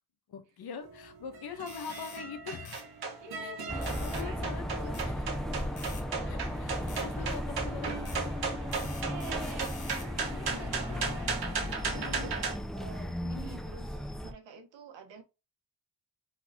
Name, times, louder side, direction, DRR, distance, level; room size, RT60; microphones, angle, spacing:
voice 1, 0.3-2.8 3.4-5.2 6.3-8.0 9.4-9.7 10.0-11.3 11.9-12.3 13.2-13.5, left 7 dB, 60° left, 1.1 m, -44 dB
sound 1, 0.8-12.6, right 5 dB, 60° right, 1.5 m, -37 dB
sound 2, 1.7-2.2 2.7-2.9 3.8-4.3 4.9-5.1 5.8-6.1 6.9-7.1 8.1-8.2 8.7-10.1, left 5 dB, 45° left, 1.4 m, -47 dB
voice 2, 3.2-4.9 6.1-7.3 9.0-9.8 10.1-11.1 11.9-12.3 12.7-15.2, right 4 dB, 90° right, 1.3 m, -48 dB
sound 3, 3.7-14.3, equal, ahead, 0.5 m, -36 dB
4.2 x 4.1 x 2.8 m
cardioid pair, 115°, 43 cm